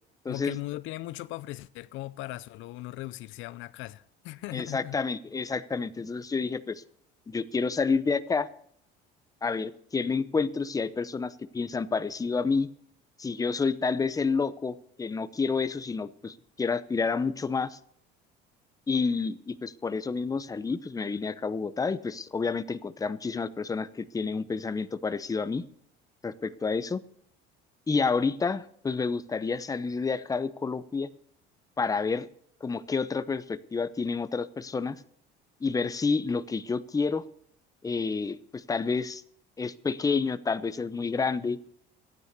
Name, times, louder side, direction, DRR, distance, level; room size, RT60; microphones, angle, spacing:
voice 1, 0.3-5.0, left 17 dB, 70° left, 0.6 m, -38 dB
voice 2, 4.5-6.8 7.3-8.5 9.4-12.7 13.2-17.8 18.9-25.6 26.2-27.0 27.9-31.1 31.8-32.3 32.6-35.0 35.6-37.2 37.8-39.2 39.6-41.6, left 4 dB, 15° left, 0.8 m, -29 dB
14.5 x 9.7 x 6.7 m
cardioid pair, 115°, 21 cm